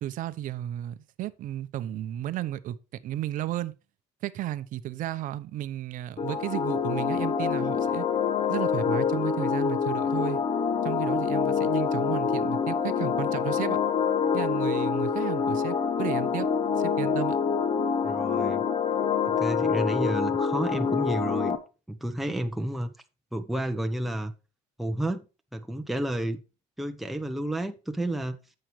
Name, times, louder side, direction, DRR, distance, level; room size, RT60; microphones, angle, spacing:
voice 1, 0.0-2.8 3.0-3.7 4.2-8.0 8.5-10.4 10.8-13.8 14.3-16.5 16.8-17.4, right 13 dB, 55° right, 0.8 m, -33 dB
sound 1, 6.2-21.6, left 6 dB, 35° left, 1.3 m, -26 dB
voice 2, 18.0-18.6 19.3-21.6 21.9-22.9 23.3-24.3 24.8-25.2 25.5-26.4 26.8-28.4, right 1 dB, ahead, 0.9 m, -31 dB
10.5 x 7.8 x 3.2 m
cardioid pair, 125°, 17 cm